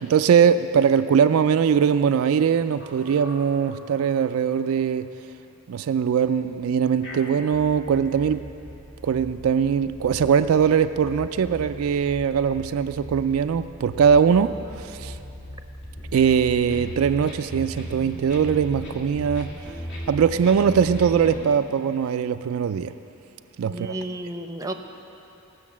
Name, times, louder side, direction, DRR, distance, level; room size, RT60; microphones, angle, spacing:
voice 1, 0.0-5.1 5.7-8.4 9.0-15.2 16.1-19.5 20.1-22.9 23.6-23.9, right 7 dB, 75° right, 10 dB, 0.3 m, -21 dB
sound 1, 2.8-4.6 5.0-5.1 5.5-5.6 6.4-21.4, equal, 65° left, 2.1 m, -38 dB
voice 2, 23.7-24.7, right 1 dB, 15° right, 5 dB, 0.6 m, -32 dB
17.0 x 6.4 x 7.3 m, 2.9 s
head